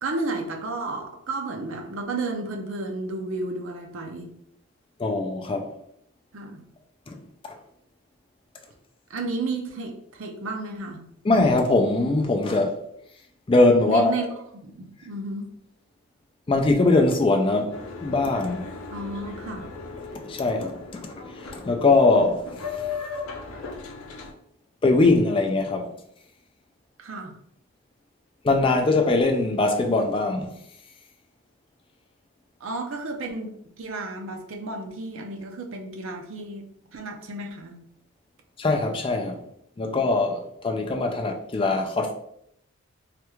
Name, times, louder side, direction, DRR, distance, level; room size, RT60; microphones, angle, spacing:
voice 1, 0.0-4.3 6.3-6.6 9.1-11.0 13.8-14.3 14.6-15.5 18.9-19.6 27.0-27.4 32.6-37.8, right 2 dB, 70° right, 0.5 m, -32 dB
voice 2, 5.0-5.7 7.1-7.2 7.4-7.5 11.2-12.8 13.5-14.1 16.5-18.7 20.3-21.2 21.5-22.4 24.8-25.9 28.4-30.6 38.6-39.4 39.8-42.1, left 2 dB, 25° left, 0.3 m, -21 dB
Boat Water vehicle, 17.7-24.3, left 4 dB, 85° left, 0.6 m, -37 dB
3.3 x 2.3 x 3.0 m
head